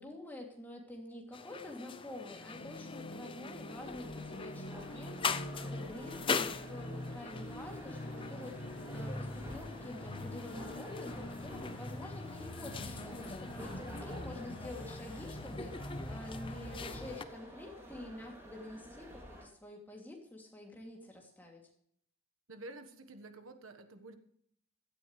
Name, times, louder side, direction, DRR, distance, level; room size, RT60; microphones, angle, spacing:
voice 1, 0.0-21.7, left 1 dB, 10° left, 0 dB, 2.7 m, -48 dB
sound 1, 1.3-17.2, left 5 dB, 25° left, 0.5 m, -43 dB
sound 2, 2.3-17.3, left 1 dB, 45° left, 1.1 m, -45 dB
sound 3, 3.6-19.5, equal, 10° right, 3.0 m, -51 dB
voice 2, 22.5-24.2, right 2 dB, 75° right, 7 dB, 1.4 m, -49 dB
16.5 x 13.0 x 3.3 m, 0.68 s
head